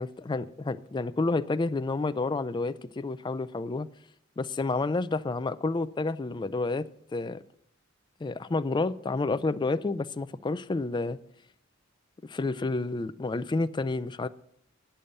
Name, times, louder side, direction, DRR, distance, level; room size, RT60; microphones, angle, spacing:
voice 1, 0.0-3.9 4.4-6.9 7.1-7.4 8.2-11.2 12.2-14.3, left 3 dB, 20° left, 0.4 m, -30 dB
10.0 x 6.9 x 6.5 m
head